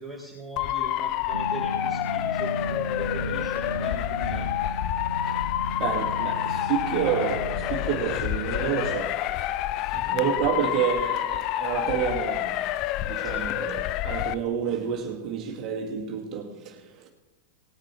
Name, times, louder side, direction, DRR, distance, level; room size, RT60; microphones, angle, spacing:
voice 1, 0.0-4.5 9.8-10.1 13.2-13.5, right 2 dB, ahead, 3.6 m, -41 dB
Motor vehicle (road) / Siren, 0.6-14.3, left 13 dB, 40° left, 0.5 m, -28 dB
Growling, 1.3-9.0, equal, 90° left, 0.6 m, -35 dB
voice 2, 5.8-9.2 10.0-12.7 13.0-17.1, right 7 dB, 35° right, 1.8 m, -29 dB
18.5 x 10.0 x 4.4 m
figure-of-eight pair, 90°, 0 cm